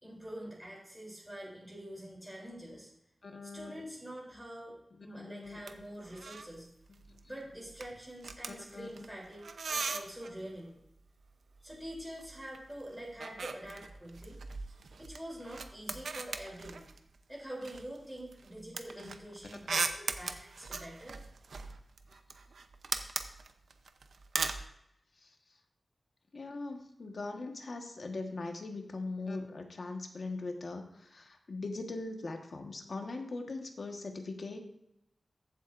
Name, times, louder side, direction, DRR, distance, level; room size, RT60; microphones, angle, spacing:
voice 1, 0.0-2.9 3.4-6.7 7.2-10.7 11.6-14.4 15.0-16.9 17.3-21.2, right 1 dB, 5° right, -5 dB, 3.3 m, -45 dB
voice 2, 3.2-3.8 5.0-5.6 7.1-7.2 8.7-9.0 19.0-19.2 25.2-25.3 26.3-34.6, left 3 dB, 55° left, 3 dB, 1.3 m, -41 dB
sound 1, 5.4-5.8 6.0-6.6 6.8-7.2 7.5-10.4 11.6-12.6 12.9-17.2 17.6-24.7, right 4 dB, 80° right, 0.7 m, -39 dB
15.0 x 7.7 x 2.6 m, 0.79 s
wide cardioid pair, 115°, 0 cm